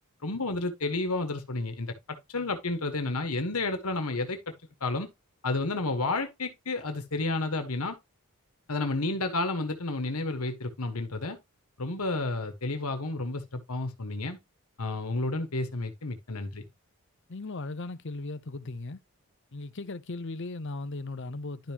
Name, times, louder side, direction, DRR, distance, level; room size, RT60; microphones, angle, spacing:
voice 1, 0.2-4.5 4.8-5.1 5.4-8.0 8.7-11.4 11.8-14.4 14.8-16.6, left 2 dB, 80° left, 1.4 m, -31 dB
voice 2, 17.3-19.0 19.5-21.7, left 2 dB, 55° left, 0.8 m, -37 dB
11.5 x 5.3 x 3.0 m
head